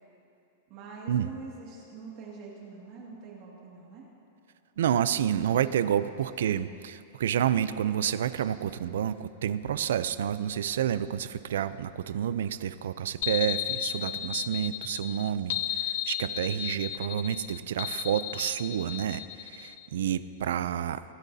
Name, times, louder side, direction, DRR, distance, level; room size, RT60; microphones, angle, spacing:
voice 1, 0.7-4.1 5.1-6.2 13.9-14.3, right 5 dB, 35° right, -3 dB, 2.1 m, -45 dB
voice 2, 4.8-21.0, right 9 dB, 80° right, 14 dB, 0.4 m, -29 dB
sound 1, 13.2-19.9, left 13 dB, 50° left, 0.6 m, -34 dB
23.5 x 12.5 x 2.8 m, 2.6 s
supercardioid pair, 175°, 0 cm